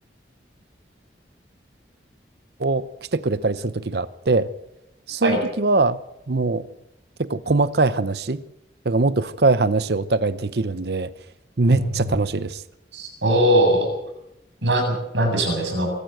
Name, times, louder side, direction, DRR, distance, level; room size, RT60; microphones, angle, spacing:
voice 1, 3.1-4.5 5.1-6.0 6.3-6.7 7.2-8.4 8.8-11.1 11.6-12.6, right 3 dB, 65° right, 0.8 m, -22 dB
voice 2, 11.7-12.1 12.9-13.9 14.6-16.0, right 1 dB, 85° right, 7.7 m, -21 dB
24.5 x 14.0 x 7.9 m
head